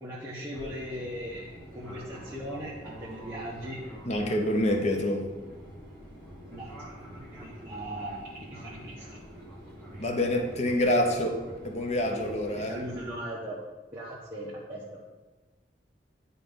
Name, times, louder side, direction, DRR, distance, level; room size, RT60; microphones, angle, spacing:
voice 1, 0.0-2.7 3.0-3.8 6.5-9.1 12.6-13.6 13.9-14.8, equal, 15° right, -8 dB, 1.1 m, -39 dB
Fixed-wing aircraft airplane, 0.5-13.2, equal, 20° left, 2.4 m, -46 dB
voice 2, 4.0-5.3 10.0-12.8, left 1 dB, 40° left, 4 dB, 0.9 m, -27 dB
10.0 x 4.1 x 3.9 m, 1.2 s
head